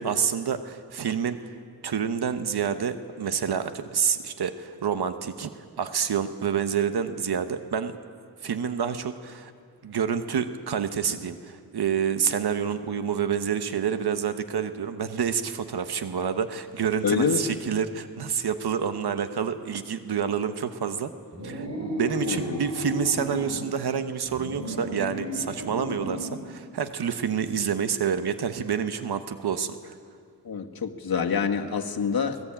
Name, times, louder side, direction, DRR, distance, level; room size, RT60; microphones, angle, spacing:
voice 1, 0.0-1.4 1.8-5.5 5.8-8.0 8.4-9.5 9.8-21.1 21.4-29.9, right 7 dB, 90° right, 9 dB, 1.1 m, -28 dB
voice 2, 17.0-17.4 22.3-22.6 30.4-32.4, left 6 dB, 70° left, 2 dB, 1.7 m, -26 dB
sound 1, 21.3-23.6 24.2-26.4, equal, 45° right, 4.0 m, -33 dB
24.5 x 19.0 x 8.8 m, 2.2 s
wide cardioid pair, 105°, 37 cm